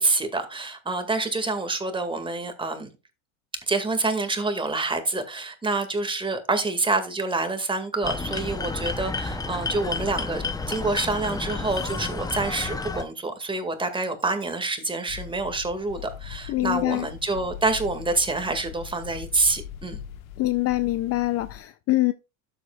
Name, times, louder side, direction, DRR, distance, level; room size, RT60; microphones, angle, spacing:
voice 1, 0.0-2.9 3.7-20.0, right 3 dB, 10° right, 2.0 m, -27 dB
sound 1, 8.0-13.0, left 3 dB, 10° left, 0.7 m, -30 dB
sound 2, 15.1-21.6, left 9 dB, 85° left, 1.5 m, -41 dB
voice 2, 16.5-17.1 20.4-22.1, left 17 dB, 35° left, 0.5 m, -24 dB
13.0 x 7.7 x 2.4 m
supercardioid pair, 115°, 40 cm